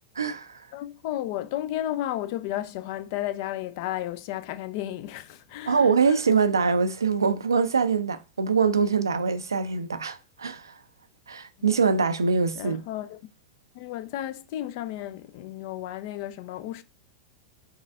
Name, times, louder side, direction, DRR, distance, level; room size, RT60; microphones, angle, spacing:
voice 1, 0.2-0.6 5.7-10.7 11.3-12.8, right 5 dB, 85° right, 0.4 m, -24 dB
voice 2, 0.7-6.2 11.6-11.8 12.6-13.2 13.7-16.8, left 13 dB, 50° left, 0.3 m, -33 dB
5.4 x 2.4 x 2.4 m
figure-of-eight pair, 95°, 2 cm